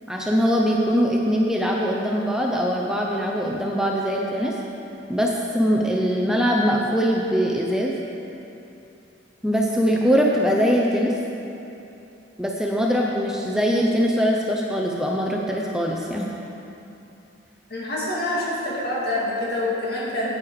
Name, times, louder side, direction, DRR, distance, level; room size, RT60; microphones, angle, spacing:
voice 1, 0.1-4.5 5.1-7.9 9.4-11.1 12.4-16.3, equal, 5° right, -2 dB, 0.6 m, -22 dB
voice 2, 17.7-20.3, left 1 dB, 55° left, -6 dB, 2.4 m, -26 dB
9.5 x 8.7 x 4.8 m, 2.8 s
head